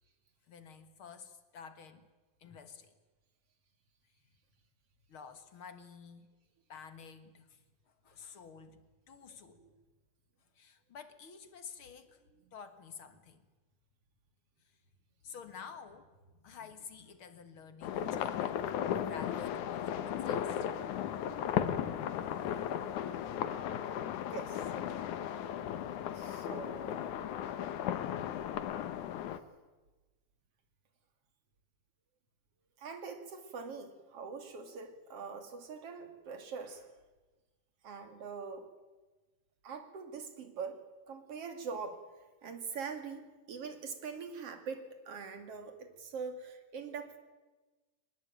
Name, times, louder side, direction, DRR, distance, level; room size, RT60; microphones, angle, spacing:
voice 1, 0.5-2.1 2.4-2.9 5.1-6.3 6.7-7.6 7.9-9.6 10.5-12.2 12.5-13.4 15.2-20.7, left 6 dB, 50° left, 10 dB, 2.1 m, -51 dB
sound 1, 17.8-29.4, left 10 dB, 70° left, 2.5 m, -36 dB
voice 2, 24.3-24.7 26.1-27.0 32.8-36.9 37.8-38.7 39.6-42.1 42.4-47.2, right 5 dB, 50° right, 7 dB, 3.4 m, -43 dB
24.5 x 20.0 x 9.1 m, 1.2 s
omnidirectional pair, 3.7 m